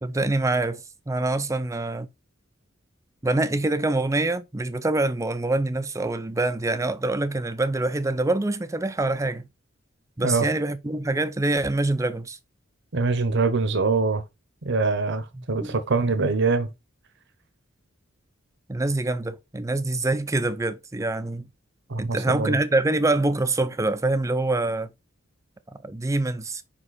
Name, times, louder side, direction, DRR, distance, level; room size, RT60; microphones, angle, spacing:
voice 1, 0.0-2.1 3.2-9.4 10.2-12.4 15.4-15.7 18.7-21.5 22.0-24.9 25.8-26.6, right 2 dB, 15° right, 0.5 m, -25 dB
voice 2, 12.9-14.2 14.6-16.7 21.9-22.6, right 3 dB, 60° right, 0.9 m, -23 dB
5.3 x 5.0 x 4.2 m
head